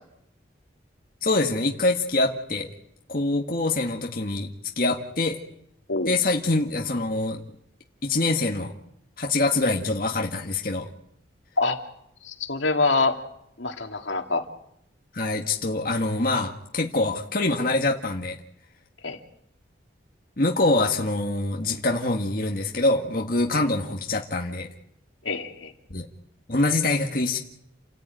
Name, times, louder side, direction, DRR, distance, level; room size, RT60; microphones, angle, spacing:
voice 1, 1.2-2.7 3.1-4.5 4.8-5.4 6.1-7.4 8.0-8.7 9.2-10.9 15.1-18.4 20.4-24.7 25.9-26.1 26.5-27.4, left 2 dB, 50° left, 1 dB, 1.8 m, -24 dB
voice 2, 12.2-13.2 13.6-14.4 19.0-19.2 25.2-25.7, left 3 dB, 85° left, 3 dB, 2.6 m, -25 dB
30.0 x 14.0 x 9.2 m, 0.77 s
head